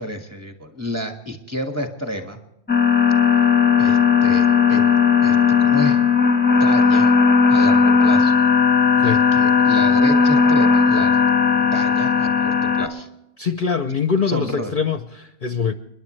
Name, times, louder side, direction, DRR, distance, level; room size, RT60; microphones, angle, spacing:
voice 1, 0.0-2.4 3.8-4.8 5.2-6.0 6.5-7.1 7.5-8.3 9.0-11.2 11.5-13.1 14.3-14.7, equal, 10° right, 4 dB, 1.7 m, -30 dB
sound 1, 2.7-12.9, left 6 dB, 10° left, 1.0 m, -16 dB
voice 2, 13.4-15.7, left 6 dB, 50° left, 9 dB, 0.8 m, -23 dB
29.5 x 11.0 x 3.2 m, 0.87 s
omnidirectional pair, 1.4 m